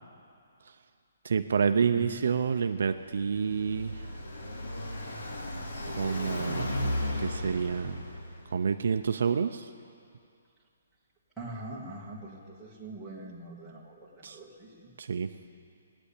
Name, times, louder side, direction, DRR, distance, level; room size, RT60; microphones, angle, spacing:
voice 1, 1.2-4.0 5.9-8.1 8.5-9.7 14.2-14.4 15.0-15.3, right 6 dB, 55° right, 8 dB, 0.5 m, -29 dB
Car passing by, 3.0-8.5, left 1 dB, 70° left, 2.8 m, -35 dB
voice 2, 6.0-6.3 11.4-14.9, right 1 dB, ahead, -7 dB, 1.5 m, -43 dB
16.5 x 9.8 x 8.4 m, 2.4 s
hypercardioid pair, 175°, 0 cm